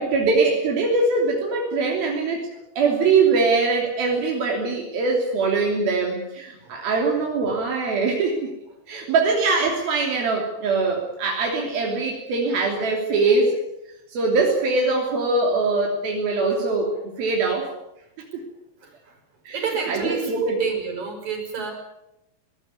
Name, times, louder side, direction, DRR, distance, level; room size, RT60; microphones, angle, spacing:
voice 1, 0.0-8.5 8.9-13.6 14.1-17.7 18.3-18.4 19.5-19.6 19.9-20.6, right 3 dB, 80° right, 0 dB, 5.0 m, -22 dB
voice 2, 18.8-19.2 19.5-21.7, right 5 dB, 50° right, 4 dB, 7.0 m, -30 dB
21.5 x 18.5 x 9.5 m, 0.88 s
omnidirectional pair, 4.2 m